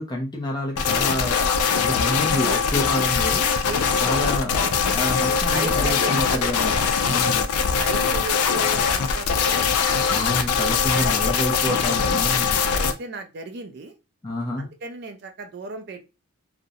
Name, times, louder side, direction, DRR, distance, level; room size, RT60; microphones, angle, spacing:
voice 1, 0.0-3.4 4.0-6.8 7.1-7.5 10.1-12.6 14.2-14.7, left 1 dB, 20° left, 0 dB, 0.5 m, -28 dB
sound 1, 0.8-12.9, left 6 dB, 85° left, 0.4 m, -22 dB
voice 2, 3.6-4.3 4.6-4.9 5.5-6.5 7.0-7.3 7.8-9.7 10.1-10.2 10.5-11.4 12.7-13.9 14.6-16.0, right 3 dB, 45° right, 6 dB, 0.4 m, -36 dB
2.4 x 2.0 x 2.6 m, 0.28 s
head